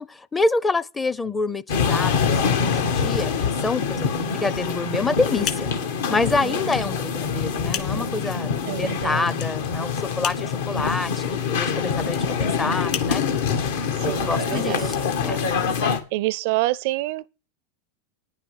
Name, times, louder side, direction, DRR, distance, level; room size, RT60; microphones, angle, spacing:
voice 1, 0.0-3.3 3.6-5.7 6.1-13.2 14.0-14.9 15.2-15.4, left 3 dB, 15° left, 0.6 m, -27 dB
sound 1, 1.7-16.0, left 6 dB, 75° left, 2.0 m, -25 dB
sound 2, 5.4-15.9, left 9 dB, 45° left, 1.9 m, -37 dB
voice 2, 6.2-6.6 8.7-9.3 14.0-15.1 16.1-17.3, right 18 dB, 65° right, 0.5 m, -27 dB
10.0 x 5.7 x 8.2 m
supercardioid pair, 120°, 0 cm